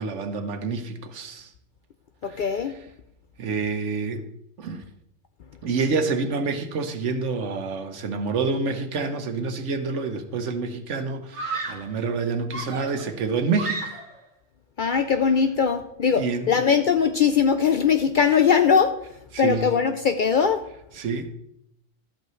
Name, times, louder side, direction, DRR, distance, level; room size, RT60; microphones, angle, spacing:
voice 1, 0.0-1.5 2.2-2.9 3.4-4.3 4.6-4.8 5.6-13.9 16.1-16.5 18.2-18.3 19.3-19.7 20.9-21.3, right 4 dB, 75° right, 7 dB, 1.2 m, -28 dB
voice 2, 2.2-2.7 14.8-18.9 19.4-20.6, left 6 dB, 60° left, 7 dB, 0.5 m, -20 dB
Screaming, 9.8-10.2 11.3-12.0 12.5-14.3, right 3 dB, 25° right, 1.1 m, -33 dB
12.5 x 8.1 x 3.1 m, 0.77 s
omnidirectional pair, 1.3 m